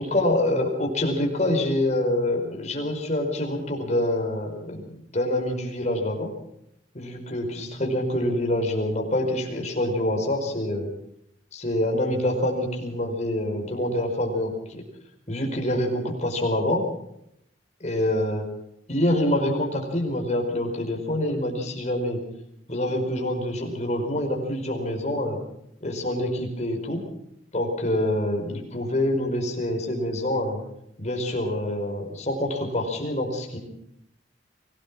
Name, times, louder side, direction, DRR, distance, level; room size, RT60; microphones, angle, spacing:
voice 1, 0.0-6.3 6.9-10.9 11.5-14.8 15.3-16.8 17.8-18.4 18.9-22.2 22.7-25.4 25.8-27.0 27.5-30.6 31.0-33.6, left 1 dB, 40° left, 2 dB, 4.9 m, -26 dB
24.0 x 17.5 x 6.2 m, 0.78 s
head